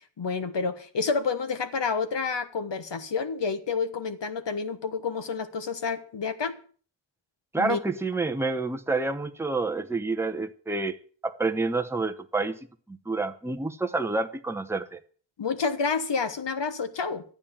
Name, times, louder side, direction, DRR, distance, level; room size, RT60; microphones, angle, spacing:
voice 1, 0.2-6.5 7.6-7.8 15.4-17.2, left 5 dB, 60° left, 1.4 m, -29 dB
voice 2, 7.5-11.0 11.2-12.6 12.9-15.0, right 3 dB, 5° right, 0.9 m, -28 dB
12.5 x 8.8 x 7.2 m
wide cardioid pair, 135°, 48 cm